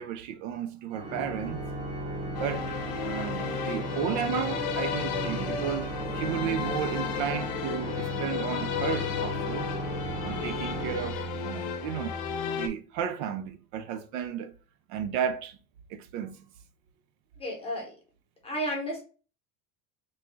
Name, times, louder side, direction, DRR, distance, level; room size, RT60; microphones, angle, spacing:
voice 1, 0.0-1.7 2.4-9.7 10.2-12.2 12.5-14.5 14.9-15.6 15.9-16.4, right 9 dB, 60° right, 0.5 m, -33 dB
Organ, 0.9-11.7, equal, 20° right, 0.7 m, -36 dB
sound 1, 2.3-12.7, left 7 dB, 65° left, 0.7 m, -34 dB
voice 2, 17.4-17.9 18.4-19.0, equal, 15° left, 0.9 m, -32 dB
3.1 x 2.3 x 3.8 m
cardioid pair, 180°, 40 cm